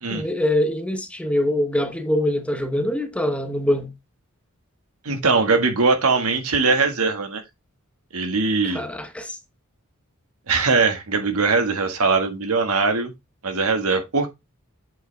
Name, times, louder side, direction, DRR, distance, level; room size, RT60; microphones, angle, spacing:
voice 1, 0.1-3.9 8.6-9.4, left 1 dB, 5° left, 1.0 m, -24 dB
voice 2, 5.0-7.4 8.1-8.8 10.5-13.1 13.4-14.3, right 4 dB, 80° right, 1.6 m, -21 dB
8.1 x 5.0 x 3.3 m
head